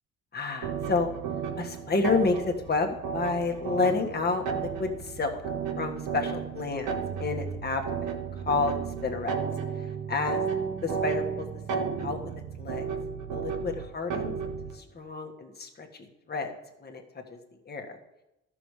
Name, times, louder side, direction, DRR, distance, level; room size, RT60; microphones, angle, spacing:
voice 1, 0.3-1.1 1.6-5.4 5.8-9.3 9.7-10.4 10.8-11.5 11.7-12.3 12.6-12.9 13.3-14.3 14.7-16.5 16.8-17.0 17.3-17.4 17.6-18.0, left 4 dB, 30° left, 3 dB, 1.6 m, -30 dB
sound 1, 0.6-14.8, right 6 dB, 80° right, 1.1 m, -33 dB
13.0 x 6.1 x 4.9 m, 0.92 s
cardioid pair, 90°, 30 cm